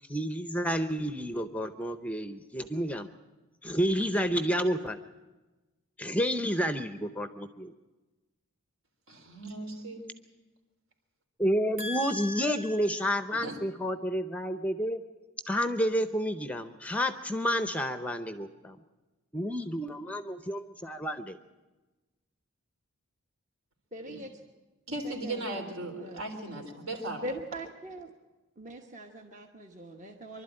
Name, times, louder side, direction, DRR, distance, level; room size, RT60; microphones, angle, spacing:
voice 1, 0.1-3.1 3.6-5.0 6.0-7.7 11.4-15.0 15.5-18.8 19.3-21.4, equal, 5° left, 10 dB, 0.6 m, -30 dB
voice 2, 9.1-10.1 11.8-13.6 24.0-24.2 24.9-27.3, right 1 dB, 70° right, 3 dB, 3.6 m, -38 dB
voice 3, 23.9-24.3 25.0-26.2 27.2-28.1 28.6-30.4, right 1 dB, 35° right, 3 dB, 1.1 m, -42 dB
24.5 x 12.0 x 8.9 m, 1.2 s
head